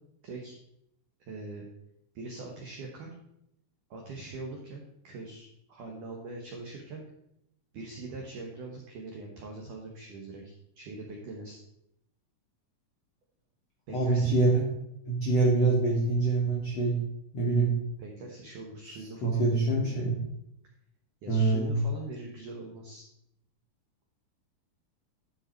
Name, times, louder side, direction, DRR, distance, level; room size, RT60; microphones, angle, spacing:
voice 1, 0.2-0.5 1.2-1.7 2.2-3.1 3.9-7.0 7.7-11.6 13.9-14.3 18.0-20.0 21.2-23.0, right 3 dB, 80° right, 0 dB, 1.8 m, -42 dB
voice 2, 13.9-14.6 15.1-17.0 17.3-17.7 19.2-20.2 21.3-21.7, right 3 dB, 70° left, -4 dB, 1.5 m, -25 dB
12.0 x 5.1 x 4.4 m, 0.78 s
omnidirectional pair, 5.6 m